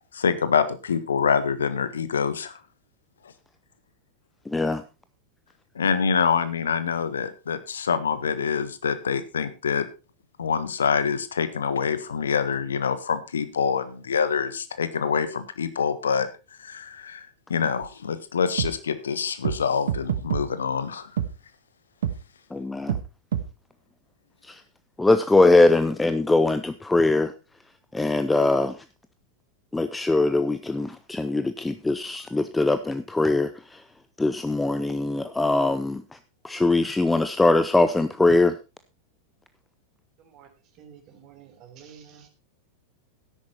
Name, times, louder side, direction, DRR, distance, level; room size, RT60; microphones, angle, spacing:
voice 1, 0.1-2.6 5.7-9.8 10.4-16.3 16.6-21.1, left 6 dB, 70° left, 12 dB, 1.4 m, -26 dB
voice 2, 4.5-4.8 22.5-23.0 24.5-24.6 25.0-27.3 27.9-28.8 29.7-33.8 34.2-36.0 36.4-38.6, left 2 dB, 10° left, 11 dB, 0.7 m, -21 dB
sound 1, 17.8-17.9 18.6-18.7 19.4-19.6 19.9-20.4 21.2-21.3 22.0-22.2 22.9-23.0 23.3-23.4, right 9 dB, 60° right, 1.3 m, -25 dB
voice 3, 40.2-40.5 40.8-42.3, right 8 dB, 35° right, 6 dB, 3.5 m, -49 dB
12.5 x 10.5 x 4.3 m, 0.30 s
figure-of-eight pair, 90°, 0 cm